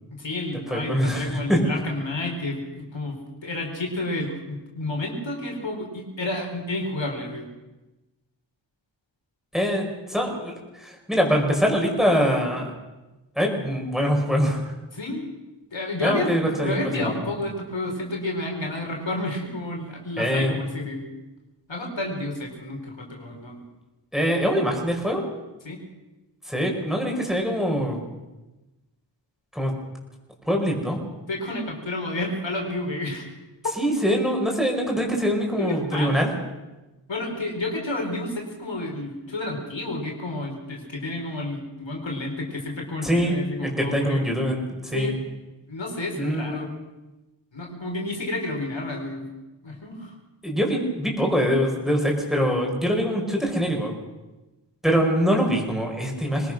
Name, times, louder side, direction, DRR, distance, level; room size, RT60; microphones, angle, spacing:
voice 1, 0.1-7.5 14.9-15.3 15.7-21.0 21.7-23.6 25.6-25.8 31.3-33.3 35.6-36.4 37.1-44.3 44.9-45.2 45.7-46.7 47.5-49.2 49.6-50.1, left 2 dB, 80° left, 1 dB, 4.8 m, -30 dB
voice 2, 0.7-1.6 9.5-12.7 13.4-14.7 16.0-17.1 20.2-20.5 24.1-25.2 26.5-28.0 29.5-29.7 30.5-31.0 33.8-36.3 43.0-43.4 43.6-45.2 46.2-46.6 50.4-53.9 54.8-56.5, equal, ahead, 0 dB, 5.4 m, -23 dB
23.0 x 19.5 x 6.3 m, 1.1 s
wide cardioid pair, 60°, 45 cm